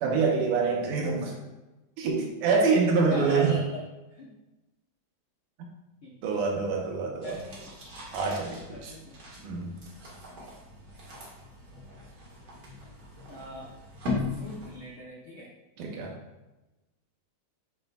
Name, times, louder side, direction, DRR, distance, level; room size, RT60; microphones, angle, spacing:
voice 1, 0.0-1.4 2.0-3.6 6.2-7.4 8.1-8.9 9.4-9.8 15.8-16.1, right 4 dB, 80° right, 0 dB, 2.5 m, -26 dB
voice 2, 3.1-3.8 4.1-4.3 6.0-6.3 7.2-7.7 8.7-9.1 13.3-13.7 14.4-15.5, equal, 90° left, -3 dB, 1.1 m, -39 dB
sound 1, 7.2-14.9, left 3 dB, 40° right, 1.9 m, -39 dB
7.1 x 7.0 x 2.3 m, 1.1 s
omnidirectional pair, 3.8 m